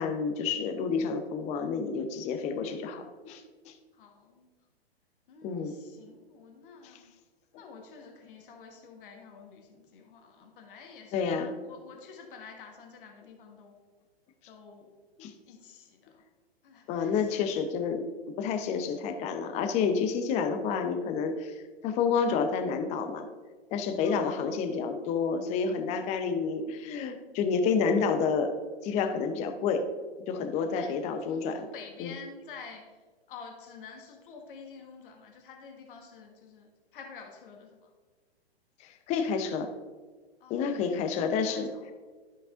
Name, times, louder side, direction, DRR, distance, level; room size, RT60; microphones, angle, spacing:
voice 1, 0.0-3.7 5.4-5.7 6.8-6.9 11.1-11.5 15.2-15.3 16.9-21.5 21.8-23.3 23.7-28.5 28.8-29.8 30.3-31.6 32.0-32.1 39.1-39.7 40.5-41.7, left 5 dB, 20° left, 7 dB, 0.6 m, -29 dB
voice 2, 3.9-4.5 5.3-7.1 7.6-11.3 11.6-13.7 14.5-14.9 15.5-16.2 16.6-17.6 24.0-24.6 30.8-30.9 31.3-32.9 33.3-37.9 40.4-41.9, left 5 dB, 55° left, 2 dB, 1.3 m, -49 dB
12.5 x 5.4 x 2.5 m, 1.4 s
figure-of-eight pair, 120°, 32 cm